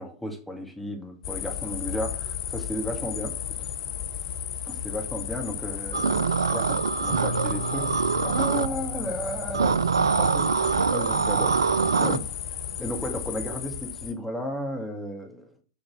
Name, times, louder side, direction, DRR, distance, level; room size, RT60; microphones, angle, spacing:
voice 1, 0.0-3.7 4.7-12.3 12.8-15.5, equal, 5° left, 1 dB, 1.9 m, -34 dB
sound 1, 1.2-14.1, left 9 dB, 50° left, 0.9 m, -34 dB
sound 2, 5.9-8.7 9.5-12.2, right 5 dB, 75° right, 0.3 m, -24 dB
Bass guitar, 7.1-11.6 12.4-13.3, equal, 35° right, 1.3 m, -38 dB
7.1 x 3.9 x 6.0 m, 0.40 s
figure-of-eight pair, 95°, 2 cm